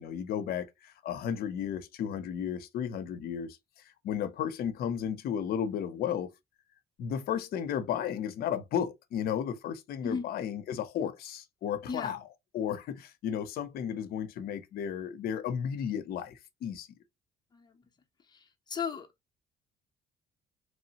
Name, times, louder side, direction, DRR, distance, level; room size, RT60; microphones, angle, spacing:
voice 1, 0.0-3.6 4.0-6.3 7.0-12.3 12.5-16.9, left 8 dB, 65° left, 0.6 m, -33 dB
voice 2, 18.7-19.1, left 6 dB, 25° left, 0.7 m, -34 dB
3.1 x 2.0 x 2.8 m
cardioid pair, 110°, 17 cm